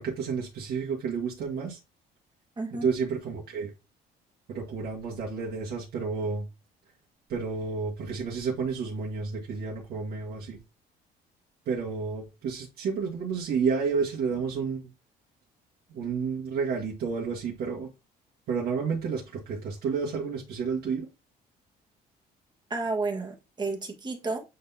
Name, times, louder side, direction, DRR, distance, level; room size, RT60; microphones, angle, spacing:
voice 1, 0.0-1.8 2.7-3.7 4.5-6.4 7.3-10.6 11.6-14.8 15.9-17.9 18.5-21.1, right 5 dB, 70° right, 1.8 m, -30 dB
voice 2, 2.6-2.9 22.7-24.4, right 3 dB, 25° right, 1.6 m, -31 dB
8.4 x 4.0 x 2.8 m
cardioid pair, 110°, 17 cm